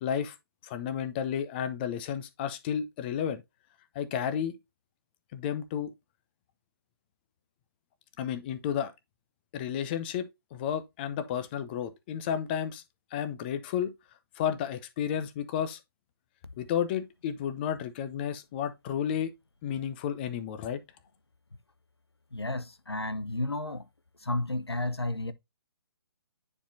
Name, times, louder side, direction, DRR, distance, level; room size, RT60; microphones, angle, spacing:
voice 1, 0.0-0.4 0.6-3.4 3.9-4.5 5.3-5.9 8.2-8.9 9.5-12.8 13.1-13.9 14.4-15.8 16.6-19.3 19.6-20.8, left 9 dB, 25° left, 0.7 m, -32 dB
voice 2, 22.3-23.9 24.2-25.3, left 2 dB, 85° left, 0.9 m, -32 dB
9.9 x 4.3 x 2.7 m
figure-of-eight pair, 140°, 13 cm